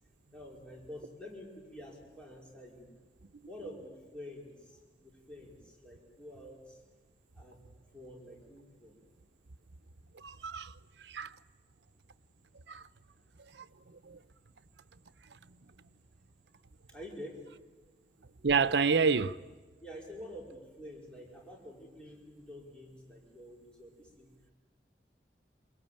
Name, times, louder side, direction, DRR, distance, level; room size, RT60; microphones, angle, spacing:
voice 1, 0.3-2.9 3.4-6.8 7.3-7.6 7.9-9.0 16.9-17.4 19.8-24.3, left 1 dB, 5° left, 4.9 m, -48 dB
voice 2, 10.1-11.4 12.7-12.8 13.5-13.7 14.0-14.2 18.4-19.4, right 5 dB, 85° right, 0.7 m, -29 dB
27.0 x 22.0 x 9.0 m
head